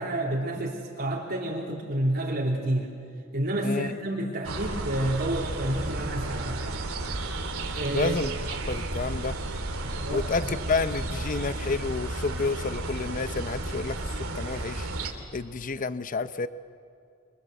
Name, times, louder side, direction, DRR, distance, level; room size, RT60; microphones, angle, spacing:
voice 1, 0.0-2.9 3.3-6.9 7.8-8.2 9.8-10.3, right 1 dB, 50° right, -3 dB, 3.1 m, -29 dB
voice 2, 3.6-3.9 7.9-9.4 10.1-16.5, left 4 dB, 40° left, 13 dB, 0.7 m, -30 dB
sound 1, 4.4-15.1, right 2 dB, 85° right, 2.9 m, -33 dB
27.5 x 26.0 x 7.8 m, 2.4 s
head